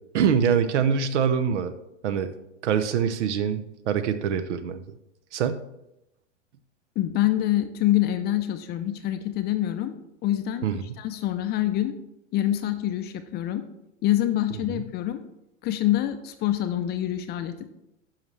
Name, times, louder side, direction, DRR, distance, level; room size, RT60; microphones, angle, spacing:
voice 1, 0.1-1.7 2.0-2.3 2.6-4.8 5.3-5.6 10.6-10.8 14.7-14.8, right 7 dB, 65° right, 12 dB, 0.8 m, -24 dB
voice 2, 7.0-11.9 12.3-13.6 14.0-15.2 15.6-17.6, left 13 dB, 25° left, 9 dB, 0.5 m, -26 dB
10.5 x 5.8 x 3.3 m, 0.86 s
hypercardioid pair, 110°, 38 cm